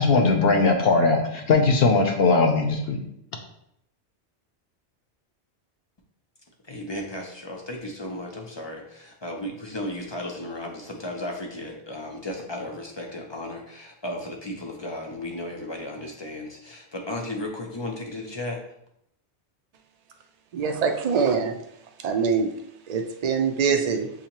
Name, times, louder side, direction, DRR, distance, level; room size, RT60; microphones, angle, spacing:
voice 1, 0.0-3.0, left 3 dB, 60° left, 3 dB, 0.8 m, -20 dB
voice 2, 6.7-18.6, left 1 dB, 40° left, 1 dB, 0.4 m, -35 dB
voice 3, 20.5-21.5 22.0-22.5 22.9-24.1, right 5 dB, 60° right, 5 dB, 0.4 m, -23 dB
6.6 x 2.7 x 2.9 m, 0.75 s
omnidirectional pair, 1.2 m